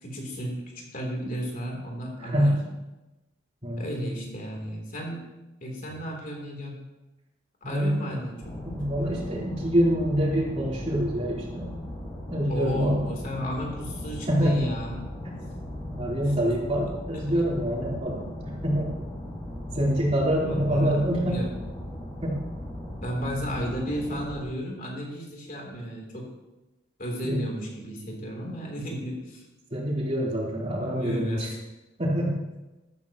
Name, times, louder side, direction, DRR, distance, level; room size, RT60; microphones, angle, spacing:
voice 1, 0.0-2.6 3.8-5.2 5.6-6.8 7.6-8.5 12.5-15.1 20.4-21.5 23.0-26.3 27.0-29.4 30.8-31.5, equal, 45° left, -1 dB, 3.3 m, -33 dB
voice 2, 2.2-2.5 3.6-4.2 7.7-8.2 8.6-11.7 12.3-13.1 14.3-14.7 15.9-18.9 19.7-21.4 22.2-22.4 27.2-27.4 29.7-31.5 32.0-32.4, equal, 35° right, -5 dB, 3.7 m, -26 dB
sound 1, 8.4-24.4, left 1 dB, 20° left, 3.8 m, -38 dB
13.5 x 13.0 x 3.0 m, 1.0 s
head